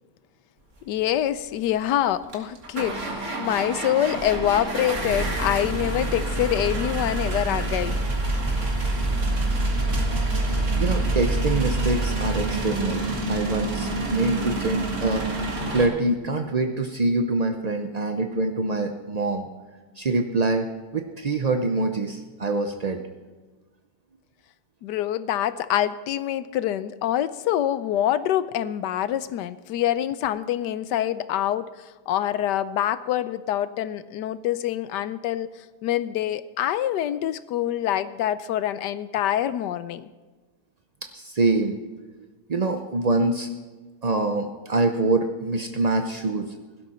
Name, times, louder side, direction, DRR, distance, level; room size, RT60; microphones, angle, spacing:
voice 1, 0.9-8.0 24.8-35.5 35.8-40.1, left 11 dB, 80° left, 15 dB, 1.2 m, -25 dB
sound 1, 1.6-1.7 2.3-15.9, right 2 dB, 45° right, 2.1 m, -26 dB
voice 2, 10.8-19.5 20.0-23.0 41.1-41.8 42.5-43.5 44.0-46.5, right 2 dB, 60° right, 6 dB, 0.4 m, -25 dB
16.5 x 12.5 x 4.3 m, 1.3 s
omnidirectional pair, 1.9 m